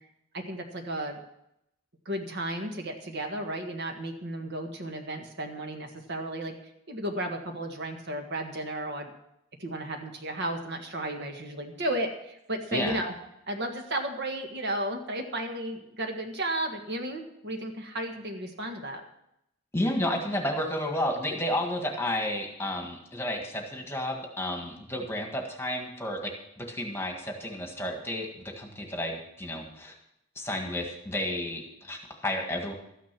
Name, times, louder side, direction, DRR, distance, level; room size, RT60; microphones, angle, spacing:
voice 1, 0.3-1.2 2.0-6.6 6.9-9.1 9.6-13.1 13.5-19.0, right 1 dB, 50° right, 4 dB, 1.7 m, -33 dB
voice 2, 19.7-29.9 30.3-32.7, left 1 dB, 10° left, 2 dB, 1.6 m, -32 dB
13.5 x 9.9 x 6.0 m, 0.80 s
head